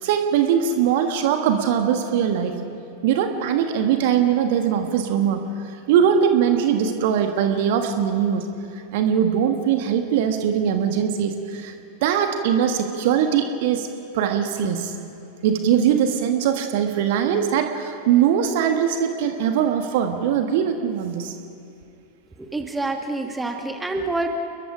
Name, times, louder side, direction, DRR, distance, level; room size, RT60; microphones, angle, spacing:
voice 1, 0.0-2.6 3.0-5.4 5.9-8.5 8.9-11.7 12.0-13.9 14.1-14.9 15.4-21.3, right 8 dB, 50° right, 6 dB, 1.6 m, -21 dB
voice 2, 22.4-24.3, right 2 dB, 10° right, 4 dB, 1.9 m, -27 dB
29.5 x 22.0 x 5.0 m, 2.6 s
figure-of-eight pair, 90°, 0 cm